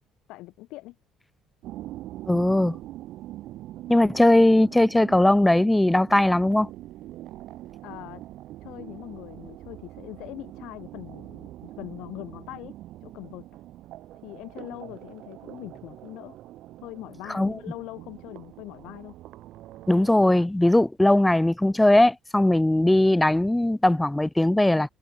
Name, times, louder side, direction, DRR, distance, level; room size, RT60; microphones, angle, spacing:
voice 1, 0.3-0.9 7.8-8.2 8.6-12.7 13.0-13.5 14.2-16.4 16.8-19.1, left 19 dB, 80° left, 4.9 m, -41 dB
sound 1, 1.6-20.3, right 15 dB, 65° right, 2.4 m, -43 dB
voice 2, 2.3-2.8 3.9-6.7 17.3-17.6 19.9-24.9, left 1 dB, 5° left, 0.4 m, -19 dB
cardioid pair, 150°, 0 cm